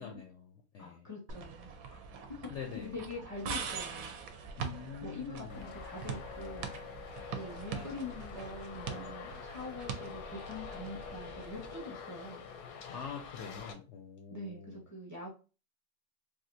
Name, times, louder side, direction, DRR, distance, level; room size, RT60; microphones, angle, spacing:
voice 1, 0.0-1.1 2.5-3.0 4.6-5.7 7.7-7.9 12.9-14.8, left 7 dB, 65° left, 3 dB, 0.7 m, -45 dB
voice 2, 0.8-2.0 2.4-4.1 5.0-6.7 7.3-12.4 14.3-15.3, left 2 dB, 15° right, -2 dB, 0.8 m, -44 dB
sound 1, 1.3-11.8, right 6 dB, 70° right, 1.0 m, -43 dB
Traffic noise roadway noise, 5.5-13.7, left 7 dB, 90° left, 1.2 m, -46 dB
3.4 x 2.6 x 2.6 m, 0.33 s
omnidirectional pair, 1.6 m